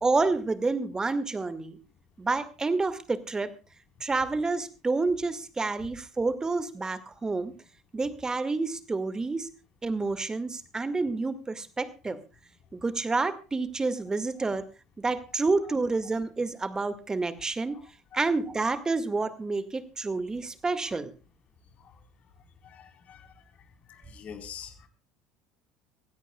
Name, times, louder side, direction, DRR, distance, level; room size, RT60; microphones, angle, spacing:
voice 1, 0.0-1.8 2.2-3.5 4.0-7.5 7.9-9.5 9.8-12.2 12.7-14.7 15.0-17.8 18.1-21.1, right 3 dB, 20° right, 11 dB, 1.9 m, -29 dB
voice 2, 22.6-23.3 23.9-24.9, left 7 dB, 45° left, 5 dB, 4.1 m, -45 dB
24.5 x 16.5 x 2.3 m, 0.32 s
hypercardioid pair, 70°, 3 cm